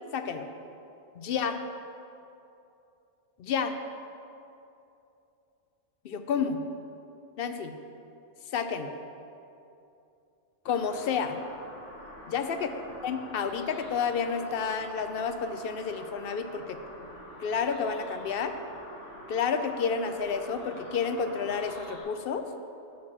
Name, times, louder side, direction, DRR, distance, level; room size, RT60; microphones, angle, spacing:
voice 1, 0.1-0.5 1.2-1.6 3.4-3.7 6.0-6.6 7.4-7.7 8.5-8.9 10.6-11.4 12.3-12.7 13.0-16.8 17.4-18.5 19.3-22.4, left 6 dB, 60° left, 8 dB, 0.7 m, -30 dB
sound 1, 10.6-22.0, left 1 dB, 90° left, 2.4 m, -46 dB
8.4 x 6.1 x 5.9 m, 2.7 s
omnidirectional pair, 1.2 m